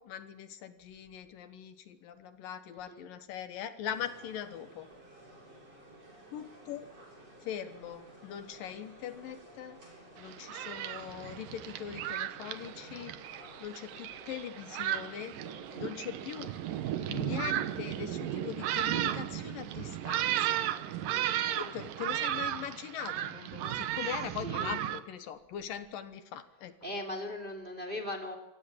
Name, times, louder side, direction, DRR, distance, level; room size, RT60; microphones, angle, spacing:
voice 1, 0.0-4.9 6.3-6.9 7.4-9.8 10.2-13.2 13.6-15.3 15.8-16.5 17.1-20.7 21.6-26.7, left 9 dB, 75° left, 10 dB, 2.9 m, -41 dB
sound 1, 3.8-22.5, right 1 dB, 45° right, 8.1 m, -54 dB
Thunderstorm, 10.2-25.0, right 12 dB, 75° right, 2.6 m, -35 dB
voice 2, 21.3-21.7 24.4-24.9 26.8-28.3, left 1 dB, 15° right, 5 dB, 2.4 m, -39 dB
26.0 x 17.0 x 7.4 m, 0.98 s
omnidirectional pair, 4.1 m